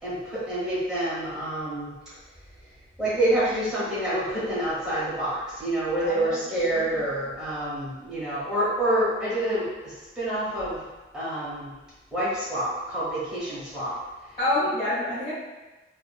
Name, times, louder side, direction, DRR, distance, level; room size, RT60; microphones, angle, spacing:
voice 1, 0.0-2.0 3.0-10.8 11.1-11.7 12.1-14.0 14.6-14.7, right 1 dB, 5° right, -11 dB, 1.0 m, -27 dB
voice 2, 6.0-6.4 6.7-6.9 14.4-15.3, left 1 dB, 20° left, -14 dB, 1.2 m, -27 dB
2.6 x 2.6 x 2.3 m, 1.1 s
head